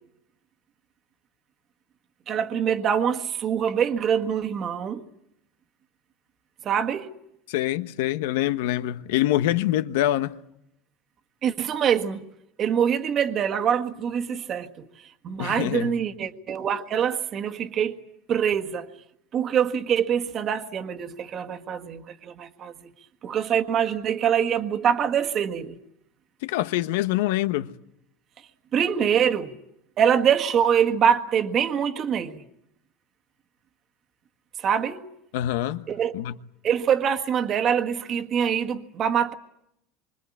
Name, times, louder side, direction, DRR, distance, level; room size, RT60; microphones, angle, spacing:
voice 1, 2.3-5.0 6.6-7.1 11.4-12.2 12.6-14.9 15.2-18.0 18.3-18.9 19.3-22.7 23.2-25.8 28.7-29.5 30.0-32.4 34.6-35.1 35.9-36.1 36.6-39.3, right 8 dB, 30° right, 1.6 m, -24 dB
voice 2, 7.5-10.4 15.4-15.9 26.4-27.7 35.3-35.8 36.1-36.3, left 14 dB, 80° left, 1.1 m, -25 dB
26.5 x 25.0 x 8.6 m
supercardioid pair, 155°, 0 cm